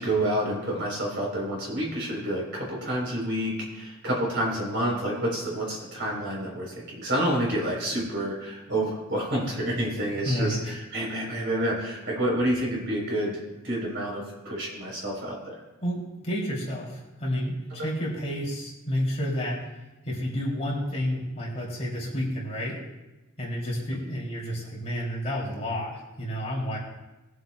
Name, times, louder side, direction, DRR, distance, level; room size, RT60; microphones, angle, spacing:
voice 1, 0.0-13.4 13.6-15.5 17.8-17.9, right 1 dB, 60° right, -2 dB, 3.8 m, -28 dB
voice 2, 10.2-10.7 15.8-19.7 20.0-22.8 23.4-26.8, equal, 30° left, -5 dB, 2.9 m, -30 dB
22.0 x 7.8 x 2.3 m, 1.1 s
head